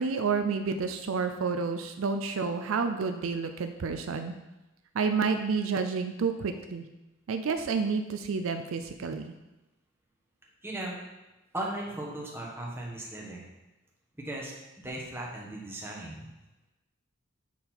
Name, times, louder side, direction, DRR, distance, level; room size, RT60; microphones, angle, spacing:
voice 1, 0.0-4.3 4.9-6.8 7.3-9.3, right 5 dB, 75° right, 7 dB, 0.4 m, -30 dB
voice 2, 10.6-11.1 11.5-13.5 14.2-16.3, right 1 dB, 10° right, -3 dB, 1.3 m, -37 dB
7.3 x 4.0 x 4.4 m, 1.0 s
head